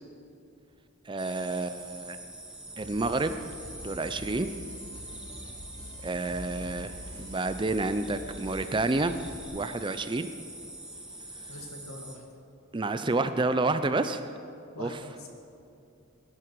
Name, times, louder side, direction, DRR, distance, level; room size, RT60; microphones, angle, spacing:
voice 1, 1.1-2.2 2.8-3.4 3.8-4.5 6.0-9.2 9.5-10.3 12.7-14.3 14.8-14.9, right 2 dB, 20° right, 10 dB, 0.4 m, -29 dB
sound 1, 1.2-12.2, right 1 dB, 5° right, 1.3 m, -44 dB
sound 2, 2.8-9.4, equal, 25° left, 3.0 m, -45 dB
voice 2, 11.5-12.2 14.7-15.3, left 1 dB, 80° left, 2 dB, 2.2 m, -43 dB
20.5 x 11.0 x 4.7 m, 2.6 s
head